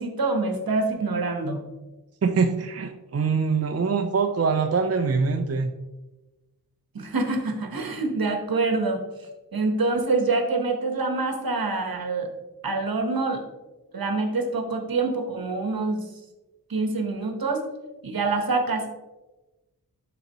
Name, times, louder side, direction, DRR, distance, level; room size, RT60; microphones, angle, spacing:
voice 1, 0.0-1.6 6.9-9.0 9.5-12.3 12.6-13.4 13.9-16.1 16.7-17.7 18.0-18.9, right 3 dB, 70° right, 4 dB, 1.2 m, -26 dB
voice 2, 2.2-5.7, right 5 dB, 45° right, 5 dB, 0.5 m, -24 dB
11.0 x 4.0 x 3.0 m, 1.1 s
wide cardioid pair, 85°, 37 cm